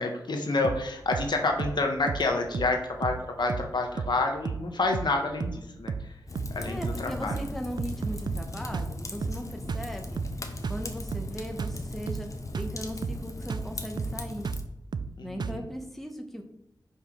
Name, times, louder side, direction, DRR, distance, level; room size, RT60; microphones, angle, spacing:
voice 1, 0.0-6.1 6.5-7.5 15.2-15.7, left 3 dB, 75° left, 2 dB, 1.2 m, -29 dB
sound 1, 0.6-0.9 1.1-1.3 1.6-1.8 2.1-2.3 2.5-2.8 3.0-3.2 3.5-3.7 4.0-4.2 4.5-4.7 4.9-5.2 5.4-5.6 5.9-6.1 6.4-6.6 6.8-7.1 7.3-7.5 7.8-8.5 8.7-9.0 9.2-9.4 9.7-9.9 10.2-10.4 10.6-10.9 11.1-11.3 11.6-11.8 12.1-12.3 12.5-12.8 13.0-13.2 13.5-13.7 14.0-14.2 14.5-14.7 14.9-15.1 15.4-15.6, right 5 dB, 70° right, 0.4 m, -33 dB
Fire, 6.3-14.6, left 1 dB, 45° left, 0.9 m, -38 dB
voice 2, 6.6-10.3 10.7-12.3 12.5-14.5 15.2-16.4, equal, 5° left, 3 dB, 1.1 m, -38 dB
5.3 x 4.2 x 6.1 m, 0.87 s
wide cardioid pair, 75°, 8 cm